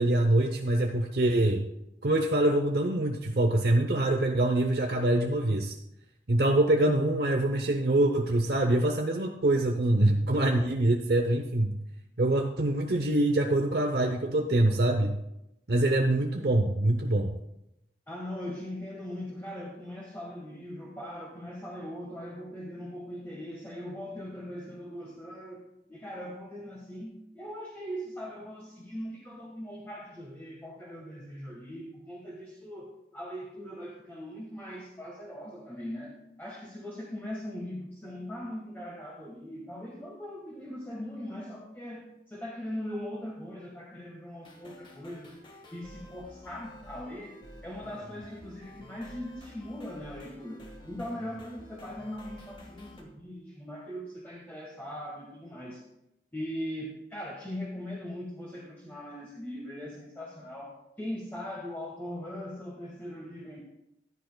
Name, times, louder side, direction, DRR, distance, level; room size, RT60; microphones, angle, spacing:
voice 1, 0.0-1.6 2.0-5.7 6.3-11.7 12.2-15.2 15.7-17.3, right 1 dB, 65° right, 4 dB, 0.7 m, -25 dB
voice 2, 18.1-25.6 25.9-45.3 45.7-47.3 47.6-55.8 56.3-63.6, equal, 10° left, -3 dB, 1.4 m, -40 dB
sound 1, 44.4-53.0, equal, 30° left, 1.4 m, -50 dB
15.0 x 10.0 x 2.3 m, 0.84 s
head